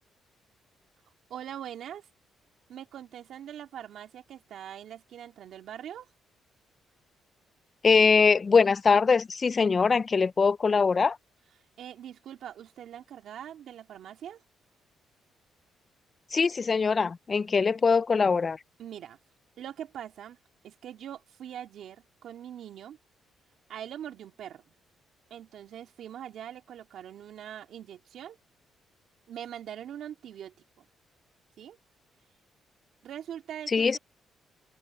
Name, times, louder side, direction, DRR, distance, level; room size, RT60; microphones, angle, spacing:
voice 1, 1.3-2.1 2.7-6.1 11.8-14.4 18.8-19.2 19.6-20.4 20.6-23.0 23.7-24.7 25.3-28.4 29.3-30.9 31.6-31.8 33.0-34.0, right 10 dB, 70° right, 2.6 m, -42 dB
voice 2, 7.8-11.2 16.3-18.6 33.7-34.0, left 5 dB, 35° left, 0.3 m, -22 dB
cardioid pair, 90°, 0 cm